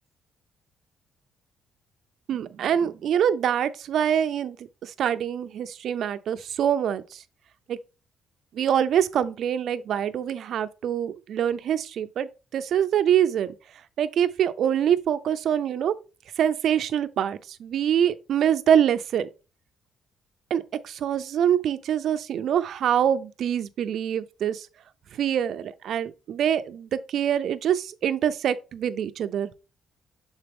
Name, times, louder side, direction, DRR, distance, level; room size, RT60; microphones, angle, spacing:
voice 1, 2.3-4.6 5.0-7.0 7.7-7.8 8.6-13.5 14.0-15.9 16.4-19.3 20.5-24.6 25.2-29.5, right 9 dB, 65° right, 0.5 m, -25 dB
6.9 x 4.0 x 3.5 m
cardioid pair, 115°, 0 cm